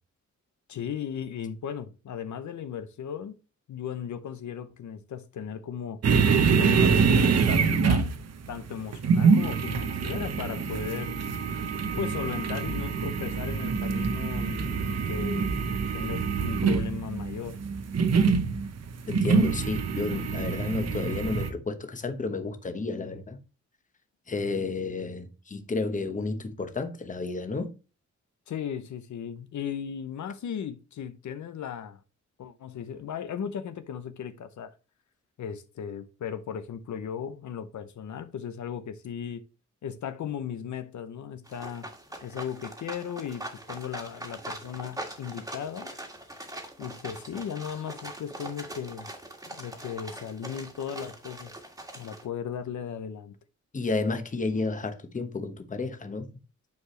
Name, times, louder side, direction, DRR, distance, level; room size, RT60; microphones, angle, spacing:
voice 1, 0.7-3.4 3.7-6.0 6.5-8.1 8.5-11.1 12.0-15.5 15.9-17.6 28.5-32.0 32.4-34.7 35.4-39.4 39.8-41.9 42.2-45.9 46.8-49.1 49.5-51.5 52.0-53.3, left 8 dB, 75° left, 0.8 m, -36 dB
sound 1, 6.0-21.5, right 5 dB, 60° right, 1.0 m, -25 dB
sound 2, 13.7-18.7, right 4 dB, 30° right, 0.4 m, -35 dB
voice 2, 19.1-23.4 24.3-27.7 53.7-56.3, left 3 dB, 25° left, 1.0 m, -31 dB
sound 3, 41.5-52.3, right 1 dB, 10° right, 1.6 m, -42 dB
9.3 x 4.8 x 3.1 m
wide cardioid pair, 155°, 30 cm